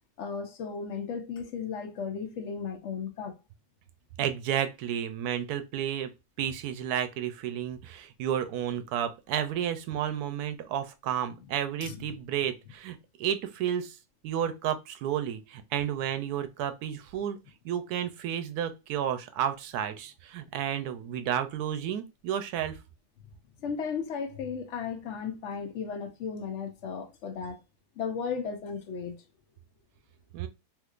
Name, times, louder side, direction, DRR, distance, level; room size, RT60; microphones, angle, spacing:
voice 1, 0.2-3.4 11.8-12.1 23.6-27.6 28.0-29.2, left 6 dB, 60° left, 0.9 m, -35 dB
voice 2, 4.2-6.1 6.4-14.0 14.2-17.4 17.6-22.8 30.3-30.5, right 9 dB, 85° right, 1.1 m, -31 dB
3.6 x 2.9 x 2.4 m
omnidirectional pair, 1.6 m